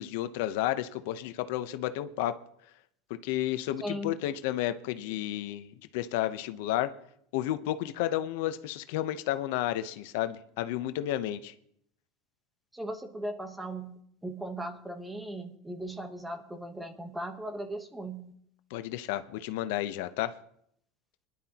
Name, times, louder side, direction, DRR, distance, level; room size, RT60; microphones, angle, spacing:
voice 1, 0.0-2.4 3.2-6.9 7.3-11.5 18.7-20.3, left 13 dB, 75° left, 11 dB, 0.8 m, -32 dB
voice 2, 3.8-4.2 12.7-18.3, right 1 dB, 5° right, 8 dB, 1.1 m, -38 dB
22.5 x 11.0 x 2.9 m, 0.71 s
supercardioid pair, 140°, 0 cm